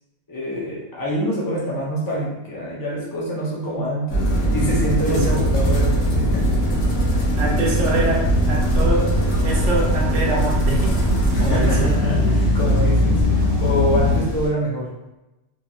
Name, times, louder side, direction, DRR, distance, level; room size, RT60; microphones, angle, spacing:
voice 1, 0.3-6.7 7.1-7.9 11.3-14.9, equal, 35° left, -5 dB, 0.3 m, -26 dB
sound 1, 4.1-14.2, equal, 90° left, 1.1 m, -20 dB
voice 2, 5.0-5.4 7.4-8.2 8.5-9.1 9.4-11.9, right 3 dB, 75° right, -2 dB, 1.0 m, -24 dB
Wind, 6.6-14.5, equal, 15° right, 0.8 m, -29 dB
3.0 x 2.7 x 2.2 m, 0.96 s
omnidirectional pair, 1.3 m